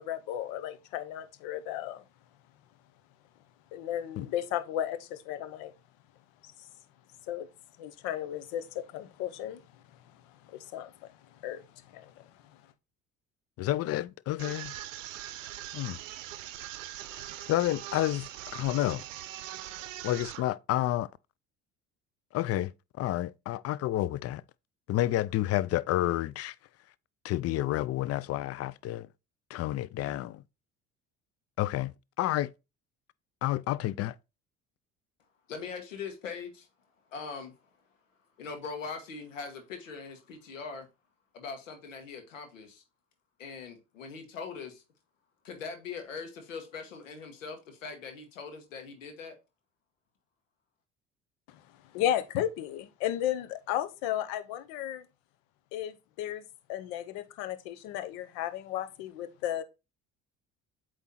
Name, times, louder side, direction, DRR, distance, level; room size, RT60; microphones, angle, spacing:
voice 1, 0.0-2.0 3.7-5.7 6.4-6.5 7.3-7.5 7.8-9.6 10.5-10.9 11.4-11.7 11.9-12.3 51.5-51.6 51.9-55.1 55.7-56.4 56.7-59.6, left 11 dB, 70° left, 0.9 m, -34 dB
voice 2, 13.6-14.7 15.7-16.0 17.5-19.0 20.0-21.1 22.3-24.4 24.9-26.5 27.2-29.1 29.5-30.4 31.6-32.5 33.4-34.2, left 14 dB, 40° left, 0.4 m, -30 dB
sound 1, 14.4-20.4, right 13 dB, 85° right, 0.6 m, -41 dB
voice 3, 35.5-36.7 37.1-37.8 38.4-40.9 41.3-42.8 43.4-44.8 45.4-49.3, left 5 dB, 90° left, 1.3 m, -41 dB
8.1 x 3.1 x 4.1 m
hypercardioid pair, 60°, 38 cm